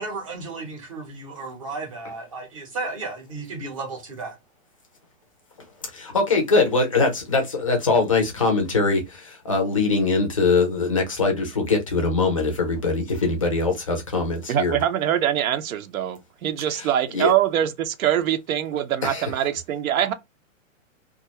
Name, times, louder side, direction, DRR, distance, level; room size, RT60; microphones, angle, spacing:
voice 1, 0.0-4.4, right 3 dB, 25° right, 0.5 m, -34 dB
voice 2, 5.9-14.8 16.7-17.3 19.0-19.3, left 3 dB, 25° left, 0.4 m, -22 dB
voice 3, 14.5-20.1, right 10 dB, 90° right, 0.6 m, -23 dB
2.4 x 2.2 x 2.8 m
hypercardioid pair, 170°, 40 cm